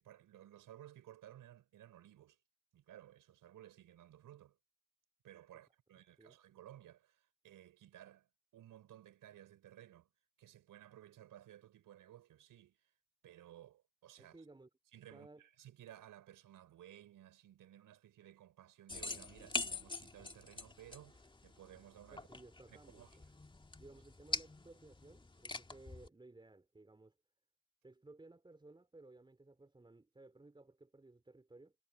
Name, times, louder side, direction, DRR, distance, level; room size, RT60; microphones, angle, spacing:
voice 1, 0.0-2.4 2.7-4.6 5.2-10.1 10.4-12.9 13.2-14.4 14.9-22.3 22.7-23.1, right 12 dB, 45° right, 3.6 m, -58 dB
voice 2, 14.2-14.7 15.1-15.4 22.1-23.3 23.8-27.2 27.8-31.8, right 2 dB, 10° right, 4.3 m, -59 dB
sound 1, 18.9-26.1, left 2 dB, 10° left, 2.2 m, -45 dB
hypercardioid pair, 75°, 44 cm